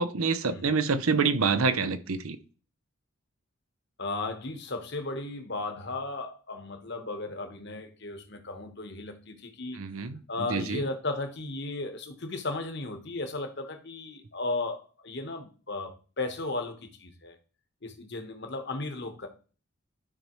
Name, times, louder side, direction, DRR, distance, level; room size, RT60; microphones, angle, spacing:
voice 1, 0.0-2.4 9.7-10.8, right 4 dB, 80° right, 0.7 m, -27 dB
voice 2, 4.0-9.9 10.3-17.4 17.8-19.3, left 2 dB, 50° left, 1.2 m, -35 dB
12.5 x 5.5 x 3.1 m
head